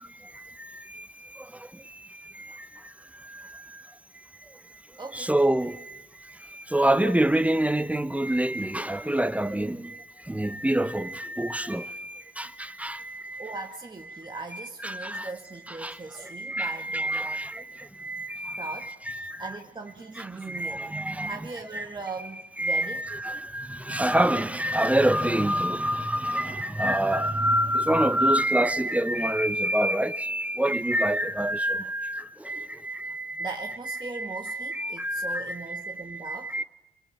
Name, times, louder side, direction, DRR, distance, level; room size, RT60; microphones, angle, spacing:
voice 1, 0.0-3.8 5.1-13.6 14.1-15.3 15.7-18.8 19.1-19.5 20.2-21.4 21.7-21.9 22.6-36.6, right 1 dB, 5° right, 1.0 m, -28 dB
voice 2, 5.0-5.3 13.4-17.5 18.6-21.0 21.3-23.1 33.4-36.5, right 3 dB, 20° right, 1.9 m, -39 dB
27.5 x 25.0 x 8.6 m
cardioid pair, 90°, 20 cm